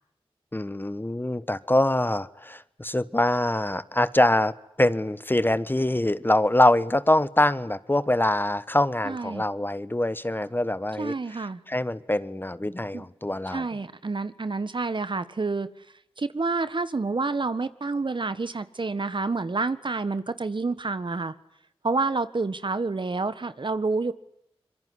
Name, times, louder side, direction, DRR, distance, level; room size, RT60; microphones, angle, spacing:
voice 1, 0.5-11.1 11.7-13.7, left 1 dB, 20° left, 15 dB, 1.2 m, -24 dB
voice 2, 9.0-9.4 11.0-11.6 12.9-13.1 13.5-15.7 16.2-21.3 21.8-24.1, right 3 dB, 55° right, 13 dB, 1.6 m, -28 dB
25.5 x 22.5 x 9.6 m, 0.76 s
cardioid pair, 40°, 10 cm